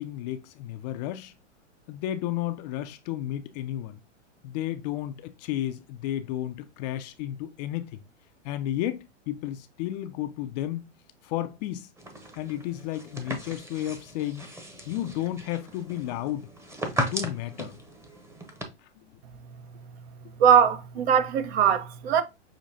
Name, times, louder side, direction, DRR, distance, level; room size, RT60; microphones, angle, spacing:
voice 1, 0.0-1.3 1.9-4.0 4.4-7.9 8.4-10.8 11.2-11.9 12.4-14.4 14.9-16.5 17.1-17.7 19.0-19.1, left 13 dB, 35° left, 0.4 m, -32 dB
sound 1, 12.0-18.6, equal, 5° right, 0.8 m, -36 dB
voice 2, 20.4-22.2, right 8 dB, 55° right, 0.9 m, -21 dB
6.3 x 2.8 x 2.6 m
hypercardioid pair, 110°, 36 cm